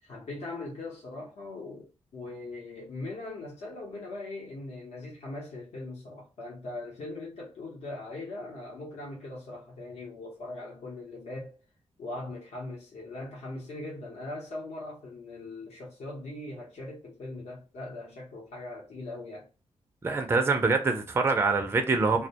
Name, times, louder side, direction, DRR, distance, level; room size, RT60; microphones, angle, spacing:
voice 1, 0.0-11.5 12.0-19.5, left 2 dB, 75° left, 0.8 m, -40 dB
voice 2, 20.0-22.3, right 3 dB, 20° right, 0.3 m, -25 dB
2.2 x 2.1 x 2.7 m
wide cardioid pair, 135°, 11 cm